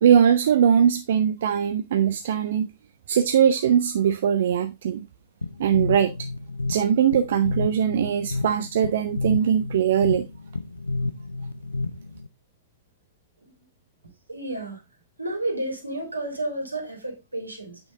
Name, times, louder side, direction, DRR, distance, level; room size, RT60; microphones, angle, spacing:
voice 1, 0.0-2.7 3.1-5.0 5.6-6.1 6.7-10.3, right 8 dB, 60° right, 0.7 m, -21 dB
sound 1, 5.4-12.3, left 2 dB, 80° left, 0.5 m, -30 dB
voice 2, 14.3-14.8 15.2-17.8, right 1 dB, 90° right, 3.2 m, -31 dB
8.5 x 6.0 x 3.7 m
figure-of-eight pair, 100°, 0 cm